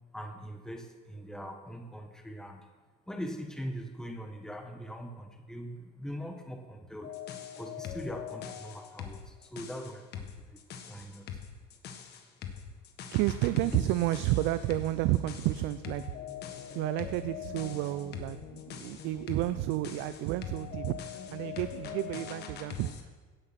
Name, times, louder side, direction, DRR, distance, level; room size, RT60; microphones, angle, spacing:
voice 1, 0.1-2.7 3.1-7.2 7.5-10.6 10.9-11.4, equal, 5° left, 4 dB, 1.4 m, -42 dB
sound 1, 7.0-23.0, left 9 dB, 60° left, 1.6 m, -42 dB
voice 2, 13.1-16.1 16.7-23.1, right 16 dB, 75° right, 14 dB, 0.5 m, -31 dB
16.5 x 6.6 x 5.8 m, 1.4 s
supercardioid pair, 90°, 20 cm